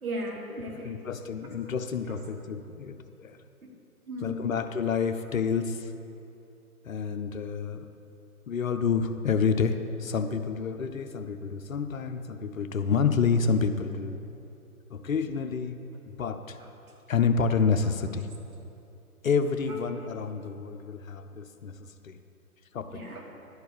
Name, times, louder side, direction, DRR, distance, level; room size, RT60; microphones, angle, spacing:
voice 1, 0.0-1.1 2.1-2.2 3.6-3.8 4.1-5.0 5.3-5.4 16.6-16.7 19.7-19.8 22.9-23.2, right 1 dB, 70° right, -1 dB, 1.8 m, -38 dB
voice 2, 0.8-3.4 4.2-5.9 6.8-7.9 8.5-14.2 14.9-15.8 16.1-16.6 17.1-18.3 19.2-21.8 22.0-22.2 22.7-23.0, left 5 dB, 65° left, 8 dB, 0.7 m, -28 dB
11.0 x 4.6 x 6.7 m, 2.8 s
figure-of-eight pair, 125°, 44 cm